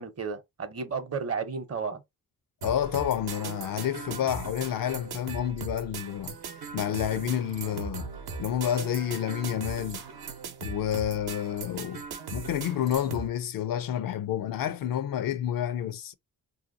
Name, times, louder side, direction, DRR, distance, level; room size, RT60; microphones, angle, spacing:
voice 1, 0.0-2.0, right 5 dB, 40° right, 0.8 m, -33 dB
voice 2, 2.6-6.3 6.7-8.1 8.4-10.0 10.6-12.0 12.3-16.1, left 10 dB, 60° left, 0.5 m, -29 dB
sound 1, 2.6-13.3, right 5 dB, 70° right, 0.8 m, -39 dB
2.8 x 2.3 x 2.6 m
cardioid pair, 55°, 38 cm